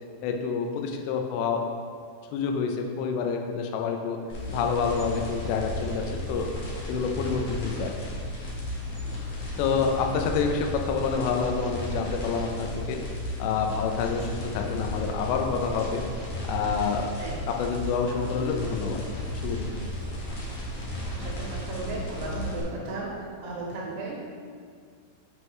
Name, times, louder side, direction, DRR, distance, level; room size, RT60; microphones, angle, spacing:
voice 1, 0.2-1.6 2.3-4.2 4.5-6.0 6.3-6.5 6.9-7.9 9.6-13.0 13.4-14.3 14.5-16.0 16.5-17.1 17.5-19.0 19.4-19.6, left 6 dB, 80° left, 3 dB, 2.6 m, -27 dB
sound 1, 4.3-22.6, left 1 dB, 65° left, 1.9 m, -34 dB
voice 2, 21.1-24.3, right 3 dB, 80° right, -4 dB, 3.0 m, -35 dB
7.2 x 6.2 x 3.2 m, 2.1 s
omnidirectional pair, 5.5 m